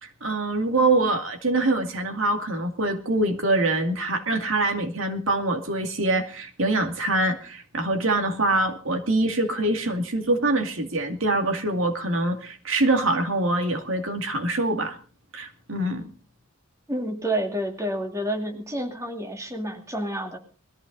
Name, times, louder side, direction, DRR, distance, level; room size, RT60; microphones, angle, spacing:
voice 1, 0.0-15.0 15.3-16.1, right 2 dB, 70° right, 4 dB, 2.4 m, -24 dB
voice 2, 16.9-20.4, right 1 dB, 15° right, 2 dB, 2.4 m, -29 dB
21.0 x 14.5 x 4.0 m, 0.39 s
head